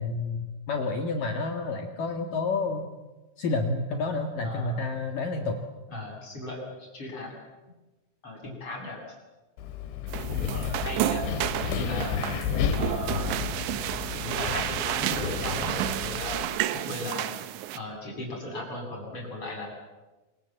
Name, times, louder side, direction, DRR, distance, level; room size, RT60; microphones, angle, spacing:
voice 1, 0.0-2.9 3.4-5.6, left 3 dB, 55° left, 4 dB, 3.1 m, -29 dB
voice 2, 4.4-4.8 5.9-7.4 8.2-9.0 10.3-11.3 11.7-12.3 12.8-13.4 14.2-17.3 17.7-19.7, left 2 dB, 30° left, 0 dB, 8.5 m, -37 dB
Wind, 9.6-16.4, left 7 dB, 85° left, 4.1 m, -32 dB
sound 1, 10.1-17.8, right 13 dB, 80° right, 3.4 m, -31 dB
27.5 x 27.0 x 7.7 m, 1.1 s
omnidirectional pair, 5.2 m